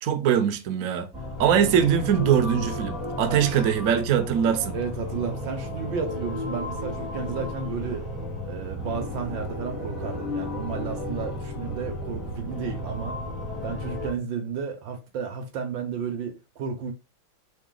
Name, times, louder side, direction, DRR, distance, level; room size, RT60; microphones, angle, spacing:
voice 1, 0.0-1.1 1.4-4.7, right 8 dB, 85° right, 0.7 m, -22 dB
sound 1, 1.1-14.1, left 2 dB, ahead, 2.0 m, -33 dB
voice 2, 3.3-3.6 4.7-8.1 8.4-13.2 13.6-16.9, right 6 dB, 65° right, 1.5 m, -32 dB
4.0 x 3.5 x 3.8 m
omnidirectional pair, 2.3 m